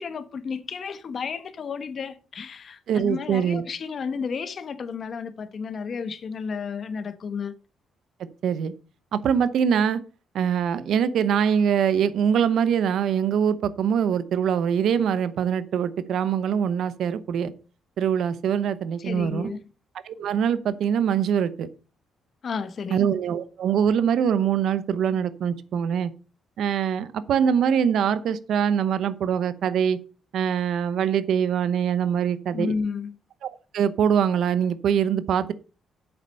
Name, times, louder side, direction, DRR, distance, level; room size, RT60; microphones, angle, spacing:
voice 1, 0.0-7.5 19.0-19.6 22.4-23.0 32.5-33.2, left 5 dB, 50° left, 1.1 m, -32 dB
voice 2, 2.9-3.6 8.4-8.7 9.1-10.0 10.3-17.5 18.0-19.5 20.1-21.7 22.9-26.1 26.6-30.0 30.3-32.7 33.7-35.5, right 8 dB, 70° right, 0.8 m, -23 dB
8.1 x 6.9 x 5.5 m
cardioid pair, 90°, 0 cm